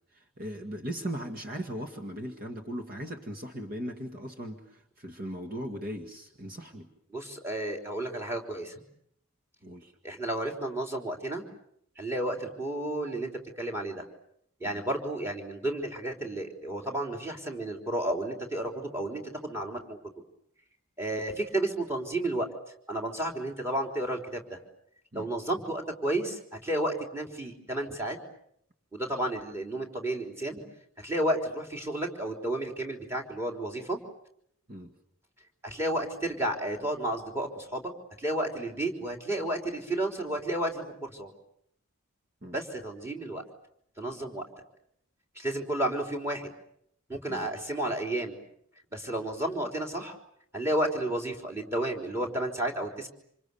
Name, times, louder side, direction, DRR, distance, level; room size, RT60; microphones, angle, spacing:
voice 1, 0.1-6.9 9.6-9.9 14.6-14.8 25.1-25.3 34.7-34.9 42.4-42.6 47.3-47.5, equal, 40° right, 3 dB, 2.0 m, -38 dB
voice 2, 7.1-8.8 10.0-11.4 12.0-13.3 13.6-14.0 14.6-20.0 21.0-22.5 22.9-24.6 25.1-28.2 28.9-30.6 31.0-34.0 35.6-37.9 38.2-41.3 42.5-43.4 44.0-44.4 45.4-46.5 47.1-48.4 48.9-50.2 50.5-53.1, right 1 dB, 10° right, 2 dB, 3.6 m, -32 dB
27.5 x 27.0 x 6.9 m, 0.72 s
head